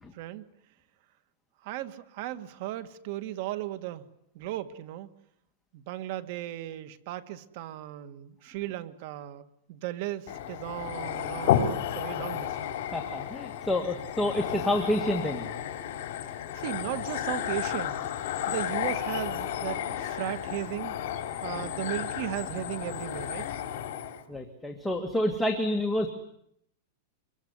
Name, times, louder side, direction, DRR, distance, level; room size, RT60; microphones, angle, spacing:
voice 1, 0.1-0.5 1.6-4.0 4.3-5.1 5.7-12.6 16.3-18.0 18.5-21.0 21.4-23.5, right 13 dB, 50° right, 12 dB, 2.0 m, -36 dB
sound 1, 10.3-24.2, left 10 dB, 60° left, 3.8 m, -32 dB
voice 2, 12.9-15.5 24.3-26.1, left 1 dB, 5° left, 3 dB, 2.0 m, -28 dB
26.0 x 23.0 x 9.7 m, 0.73 s
supercardioid pair, 155°, 0 cm